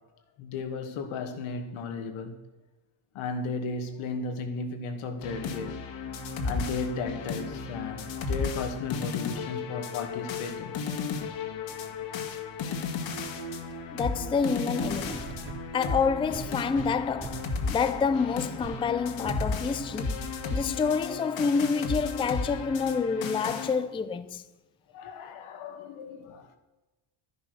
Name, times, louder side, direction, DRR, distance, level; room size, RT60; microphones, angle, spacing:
voice 1, 0.4-2.4 3.1-5.8 6.4-10.8 20.2-20.4 22.5-22.6 24.9-26.6, left 4 dB, 90° left, 2.2 m, -35 dB
sound 1, 5.2-23.7, left 4 dB, 65° left, 2.1 m, -34 dB
voice 2, 13.9-15.4 15.7-24.4, left 5 dB, 10° left, 0.4 m, -28 dB
sound 2, 14.8-15.7 16.3-17.6 18.1-18.2 18.6-18.8 19.2-19.6 20.3-20.4, right 6 dB, 25° right, 0.7 m, -41 dB
12.5 x 10.5 x 6.7 m
cardioid pair, 155°, 48 cm